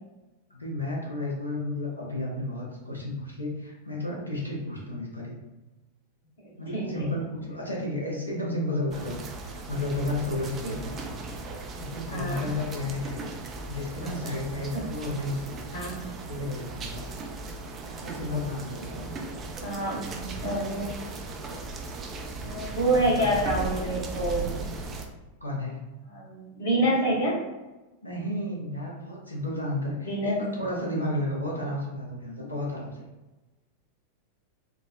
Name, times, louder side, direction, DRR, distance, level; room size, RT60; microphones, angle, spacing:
voice 1, 0.5-5.4 6.6-11.0 11.8-13.2 13.7-15.6 16.2-17.1 18.0-19.2 22.6-23.6 25.4-25.8 28.0-33.0, left 1 dB, 85° left, -4 dB, 0.8 m, -32 dB
voice 2, 6.4-6.9 10.6-10.7 12.1-12.5 14.7-14.8 15.7-16.0 19.6-20.9 22.4-24.5 26.1-27.4 30.1-30.4, right 1 dB, 60° left, -4 dB, 1.1 m, -27 dB
sound 1, 8.9-25.1, right 3 dB, 25° right, 0.4 m, -37 dB
3.7 x 2.1 x 2.4 m, 1.1 s
figure-of-eight pair, 90°, 0 cm